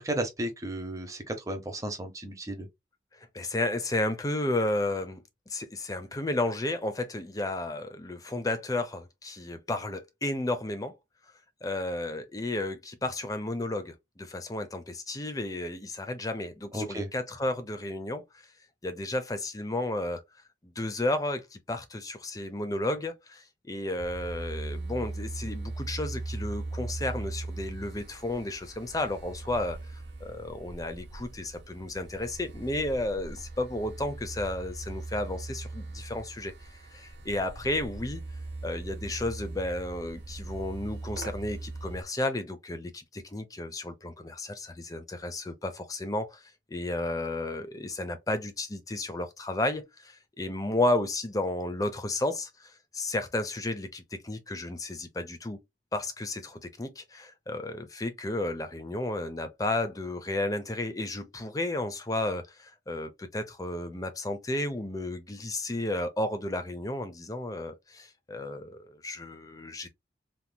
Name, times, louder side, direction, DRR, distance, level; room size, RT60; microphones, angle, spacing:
voice 1, 0.0-2.7 16.7-17.1, right 1 dB, 15° right, 0.7 m, -34 dB
voice 2, 3.1-11.0 11.6-18.5 18.8-20.2 20.6-38.2 38.6-55.6 55.9-69.9, left 1 dB, 20° left, 0.5 m, -33 dB
sound 1, 24.0-42.0, right 2 dB, 75° right, 0.9 m, -39 dB
3.5 x 2.9 x 2.2 m
head